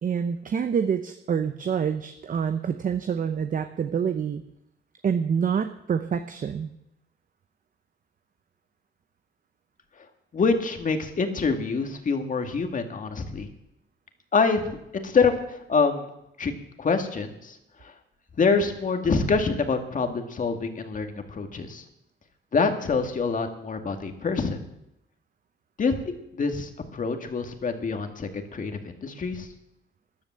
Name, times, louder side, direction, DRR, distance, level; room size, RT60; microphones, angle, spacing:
voice 1, 0.0-4.4 5.0-6.7, right 7 dB, 45° right, 9 dB, 0.8 m, -27 dB
voice 2, 10.3-13.5 14.3-16.1 16.4-16.5 16.8-17.9 18.4-21.8 22.5-24.6 25.8-26.0 26.3-29.5, left 4 dB, 40° left, 5 dB, 2.1 m, -26 dB
13.5 x 10.5 x 7.5 m, 0.83 s
cardioid pair, 90°, 20 cm